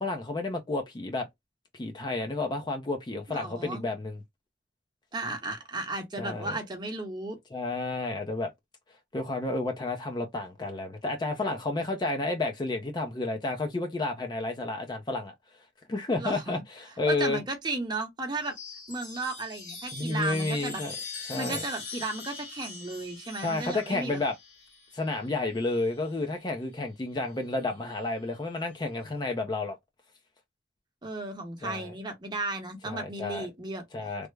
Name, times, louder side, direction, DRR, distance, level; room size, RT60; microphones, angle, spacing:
voice 1, 0.0-1.3 1.7-4.2 6.2-6.6 7.5-8.5 9.1-15.3 15.9-17.4 19.9-20.9 21.3-21.6 23.4-24.4 24.9-29.8 31.6-31.9 32.8-33.5 33.9-34.3, left 2 dB, 25° left, 0.4 m, -31 dB
voice 2, 3.3-3.8 5.1-7.4 16.2-16.6 17.1-18.5 18.9-20.8 21.4-24.2 31.0-33.8, right 2 dB, 25° right, 0.8 m, -34 dB
Chime, 18.3-26.1 27.4-28.0, left 3 dB, 70° left, 1.6 m, -43 dB
3.3 x 2.0 x 3.2 m
head